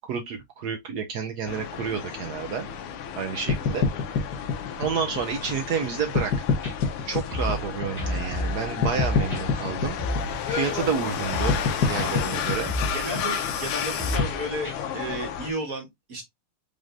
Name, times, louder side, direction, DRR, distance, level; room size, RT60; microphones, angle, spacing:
voice 1, 0.1-2.7 3.2-3.9 4.8-6.3 6.6-6.8 7.1-10.0 10.5-12.7, right 7 dB, 80° right, 0.9 m, -30 dB
sound 1, 1.5-15.5, left 8 dB, 80° left, 1.6 m, -32 dB
sound 2, 3.5-5.8 6.1-8.5 8.8-14.2, left 5 dB, 55° left, 1.5 m, -27 dB
sound 3, 6.6-6.7 7.3-7.7 8.0-8.7 9.0-9.4 10.0-10.3 10.6-10.8 11.3-11.7 12.0-12.1 12.6-13.0 13.3-13.4 14.0-14.3 14.6-14.8, equal, 15° left, 2.3 m, -30 dB
voice 2, 12.9-16.2, right 1 dB, 45° right, 1.7 m, -33 dB
5.0 x 3.8 x 2.5 m
omnidirectional pair, 2.4 m